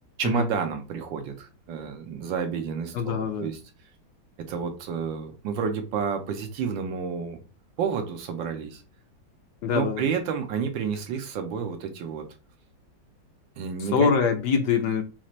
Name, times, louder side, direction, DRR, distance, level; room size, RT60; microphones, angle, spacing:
voice 1, 0.2-3.6 4.4-7.4 7.8-8.8 9.7-12.3 13.6-14.1, right 6 dB, 80° right, 1.6 m, -30 dB
voice 2, 2.9-3.5 9.6-10.0 13.9-15.0, left 6 dB, 65° left, 1.2 m, -24 dB
5.7 x 2.5 x 3.1 m
omnidirectional pair, 2.0 m